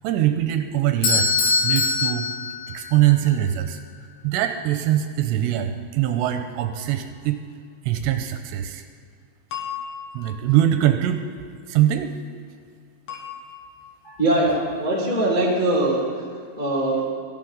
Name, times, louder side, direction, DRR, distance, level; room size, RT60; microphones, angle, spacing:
voice 1, 0.0-1.4 1.6-2.3 2.7-7.4 7.9-8.8 10.1-11.2 11.7-12.1, right 12 dB, 85° right, 7 dB, 2.7 m, -22 dB
Bell / Doorbell, 1.0-3.1, left 4 dB, 85° left, 4.4 m, -22 dB
sound 1, 6.6-7.0 9.5-11.1 13.1-14.2, left 8 dB, 60° left, 3.1 m, -37 dB
voice 2, 14.0-16.0 16.6-17.0, right 1 dB, 25° left, -6 dB, 1.1 m, -21 dB
17.5 x 14.5 x 3.9 m, 2.2 s
omnidirectional pair, 5.2 m